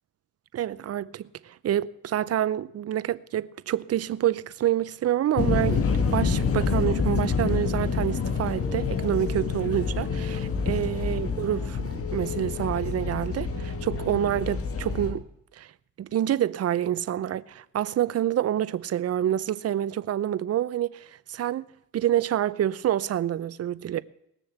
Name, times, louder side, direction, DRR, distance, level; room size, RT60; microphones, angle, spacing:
voice 1, 0.5-11.8 12.1-15.3 15.6-15.7 16.0-21.7 21.9-24.0, right 11 dB, 55° right, 0.7 m, -27 dB
sound 1, 5.4-15.1, left 5 dB, 50° left, 2.1 m, -27 dB
19.5 x 7.0 x 7.2 m
cardioid pair, 90°, 30 cm